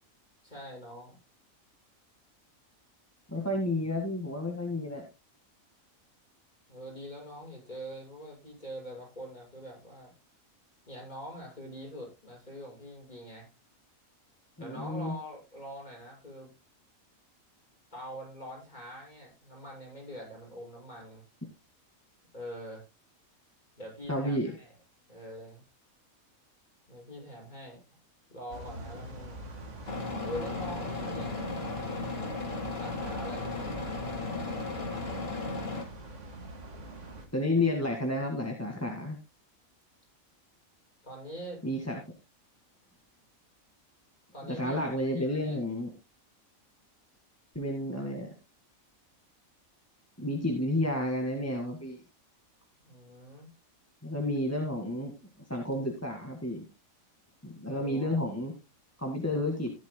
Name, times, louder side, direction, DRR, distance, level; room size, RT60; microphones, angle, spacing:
voice 1, 0.4-1.2 6.7-10.1 10.9-13.5 14.6-16.5 17.9-21.2 22.3-22.8 23.8-24.7 25.1-25.6 26.9-27.8 28.3-29.4 30.2-31.6 32.7-33.7 41.0-41.6 44.3-45.6 52.8-53.5 57.7-58.2, equal, 30° left, -2 dB, 6.8 m, -44 dB
voice 2, 3.3-5.0 14.6-15.1 24.1-24.5 37.3-39.2 41.6-42.0 44.5-45.9 47.6-48.3 50.2-52.0 54.0-55.1 55.5-56.6 57.4-58.5 59.0-59.7, left 1 dB, 10° left, 0 dB, 1.9 m, -31 dB
sound 1, 28.5-37.3, right 1 dB, 60° right, 2.1 m, -44 dB
sound 2, 29.9-35.8, left 3 dB, 45° left, 2.4 m, -35 dB
15.0 x 11.0 x 2.2 m, 0.26 s
omnidirectional pair, 1.5 m